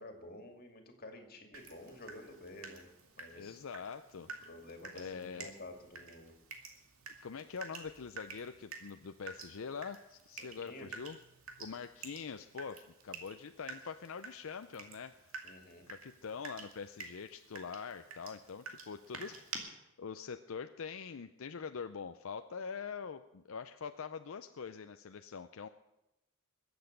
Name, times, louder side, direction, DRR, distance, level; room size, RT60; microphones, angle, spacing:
voice 1, 0.0-2.9 3.2-3.6 4.5-6.3 10.4-10.9 15.4-15.8, left 1 dB, 45° left, 4 dB, 2.2 m, -51 dB
Water tap faucet / Drip, 1.5-19.6, right 4 dB, 80° right, 2.2 m, -50 dB
voice 2, 3.4-4.3 4.9-5.5 7.2-11.2 11.6-15.3 15.9-19.4 20.0-25.7, left 6 dB, 75° left, 9 dB, 0.5 m, -44 dB
21.5 x 8.1 x 6.6 m, 0.92 s
head